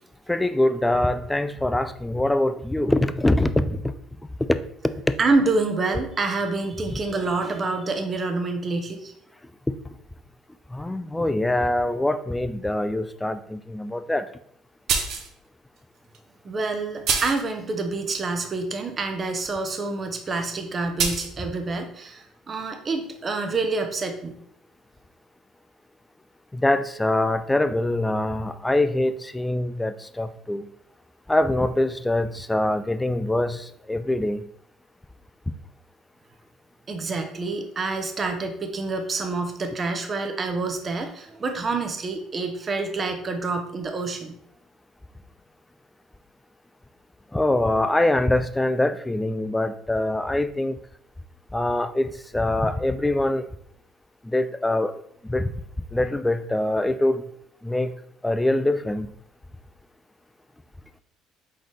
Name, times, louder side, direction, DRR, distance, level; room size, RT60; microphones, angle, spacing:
voice 1, 0.3-3.8 10.7-14.3 26.5-30.6 31.3-34.4 47.3-50.8 51.5-53.5 54.3-54.9 55.2-55.5 55.9-57.2 57.6-57.9 58.2-59.1, left 1 dB, 10° left, 12 dB, 0.3 m, -24 dB
voice 2, 5.2-9.1 16.4-24.3 36.9-44.3, right 3 dB, 30° right, 5 dB, 0.7 m, -27 dB
sound 1, 14.9-15.3 16.1-16.2 17.1-17.5 21.0-21.3, right 5 dB, 60° right, 0.7 m, -24 dB
3.9 x 3.9 x 3.2 m, 0.69 s
supercardioid pair, 95°, 0 cm